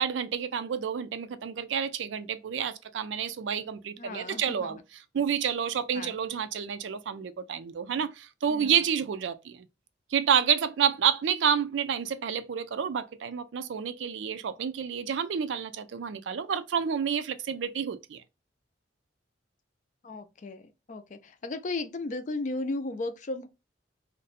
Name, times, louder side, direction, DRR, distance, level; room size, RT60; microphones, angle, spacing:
voice 1, 0.0-4.8 5.1-9.6 10.1-18.2, right 7 dB, 80° right, 0.4 m, -29 dB
voice 2, 4.0-4.8 5.9-6.1 8.5-8.7 20.0-20.6 20.9-23.5, left 2 dB, 40° left, 0.4 m, -35 dB
2.6 x 2.1 x 4.0 m
head